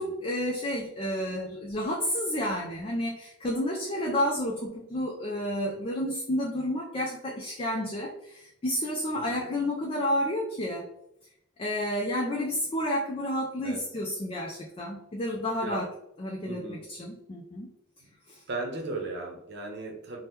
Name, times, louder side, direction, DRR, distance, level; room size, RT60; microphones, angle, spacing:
voice 1, 0.0-10.9 11.6-15.9 16.2-17.7 18.3-18.4, equal, 30° left, -1 dB, 0.4 m, -30 dB
voice 2, 9.1-9.5 13.6-13.8 15.6-15.8 16.5-16.9 18.0-18.1 18.5-20.2, right 2 dB, 60° right, 2 dB, 0.8 m, -36 dB
2.8 x 2.1 x 3.4 m, 0.79 s
head